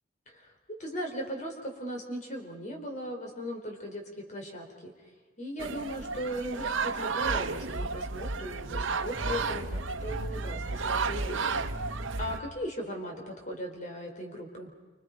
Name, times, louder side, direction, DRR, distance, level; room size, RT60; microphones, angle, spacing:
voice 1, 0.8-4.9 5.4-11.5 12.2-14.7, equal, 40° left, 2 dB, 4.2 m, -38 dB
sound 1, 5.6-12.4, right 4 dB, 80° right, 0.9 m, -32 dB
sound 2, 9.2-12.4, equal, 5° right, 1.4 m, -41 dB
29.0 x 26.0 x 5.3 m, 1.3 s
head